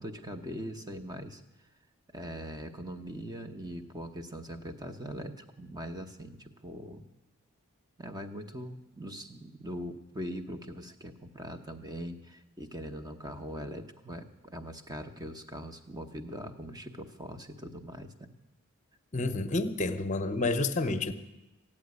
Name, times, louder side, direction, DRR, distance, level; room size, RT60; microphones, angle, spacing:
voice 1, 0.0-1.4 2.1-7.0 8.0-18.3, equal, 20° right, 7 dB, 0.9 m, -41 dB
voice 2, 19.1-21.1, left 2 dB, 35° left, 10 dB, 0.9 m, -29 dB
15.5 x 8.8 x 9.5 m, 1.0 s
head